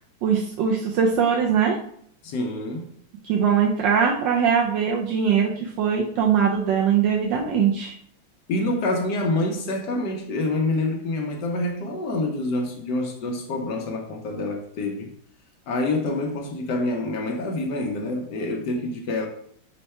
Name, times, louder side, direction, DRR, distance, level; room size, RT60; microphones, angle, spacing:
voice 1, 0.2-1.8 3.2-7.9, right 7 dB, 80° right, 1.0 m, -21 dB
voice 2, 2.2-3.0 8.5-15.1 15.7-19.3, left 2 dB, 70° left, 1.0 m, -27 dB
5.5 x 2.2 x 4.1 m
omnidirectional pair, 2.4 m